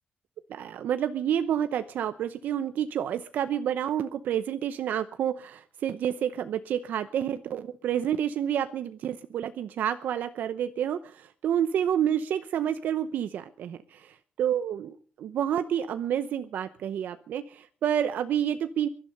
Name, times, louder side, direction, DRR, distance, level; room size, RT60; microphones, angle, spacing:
voice 1, 0.5-13.8 14.4-18.9, right 9 dB, 85° right, 11 dB, 0.8 m, -29 dB
22.0 x 12.0 x 5.4 m, 0.42 s
wide cardioid pair, 165°, 3 cm